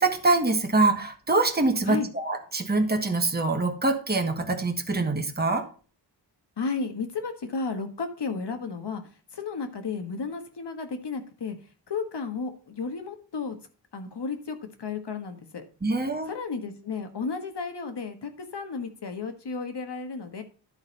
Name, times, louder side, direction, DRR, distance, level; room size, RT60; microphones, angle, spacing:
voice 1, 0.0-5.7 15.8-16.3, right 3 dB, 20° right, 4 dB, 1.3 m, -24 dB
voice 2, 6.6-9.0 9.3-11.6 11.9-13.6 13.9-15.6 16.3-20.4, left 4 dB, 65° left, 7 dB, 1.5 m, -33 dB
11.5 x 4.0 x 5.3 m, 0.38 s
wide cardioid pair, 95°, 43 cm